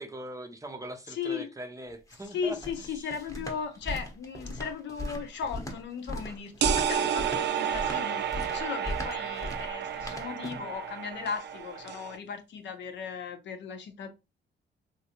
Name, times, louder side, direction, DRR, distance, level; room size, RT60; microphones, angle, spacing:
voice 1, 0.0-2.6, right 1 dB, 15° right, 0.6 m, -41 dB
voice 2, 1.1-1.5 2.1-14.1, left 6 dB, 65° left, 0.7 m, -37 dB
sound 1, 1.9-10.8, left 1 dB, 15° left, 0.9 m, -38 dB
sound 2, 6.6-12.2, right 9 dB, 60° right, 0.4 m, -31 dB
3.1 x 2.6 x 2.8 m
cardioid pair, 90°, 20 cm